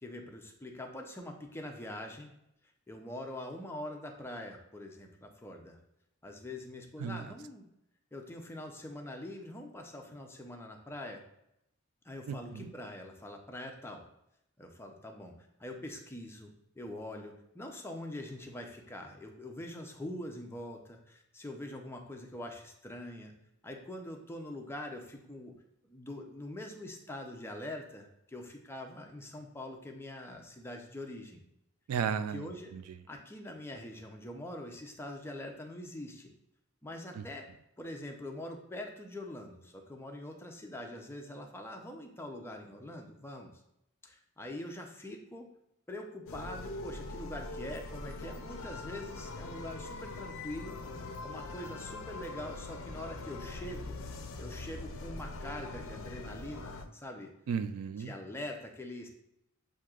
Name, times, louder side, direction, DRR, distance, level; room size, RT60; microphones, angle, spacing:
voice 1, 0.0-2.3 2.9-5.8 6.2-7.7 8.1-11.2 12.0-14.1 14.6-15.3 15.6-23.3 23.6-25.6 25.8-31.4 32.3-32.7 33.1-36.3 36.8-37.5 37.8-43.5 44.0-45.5 45.9-50.8 51.2-54.0 54.4-57.3 58.0-59.1, left 1 dB, 10° left, 2 dB, 0.5 m, -44 dB
voice 2, 7.0-7.3 12.3-12.7 31.9-33.0 37.1-37.2 57.5-58.1, right 7 dB, 70° right, 11 dB, 0.3 m, -35 dB
sound 1, 46.3-56.9, left 2 dB, 60° left, 0.5 m, -42 dB
7.4 x 2.8 x 2.4 m, 0.80 s
head